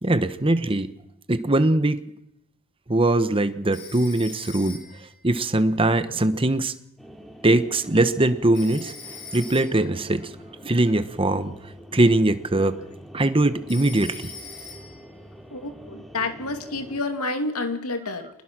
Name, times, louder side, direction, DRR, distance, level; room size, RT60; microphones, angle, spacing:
voice 1, 0.0-0.9 1.3-2.0 2.9-6.7 7.4-8.9 9.3-10.3 10.6-11.5 11.9-12.8 13.1-14.3, right 2 dB, 25° right, 11 dB, 1.1 m, -21 dB
Telephone, 3.7-5.1 8.5-9.9 13.7-15.1, left 5 dB, 55° left, 7.1 m, -41 dB
sound 1, 7.0-17.0, equal, ahead, 2.5 m, -46 dB
voice 2, 15.5-18.3, left 3 dB, 85° left, 6 dB, 2.5 m, -29 dB
25.0 x 20.5 x 6.1 m, 0.82 s
head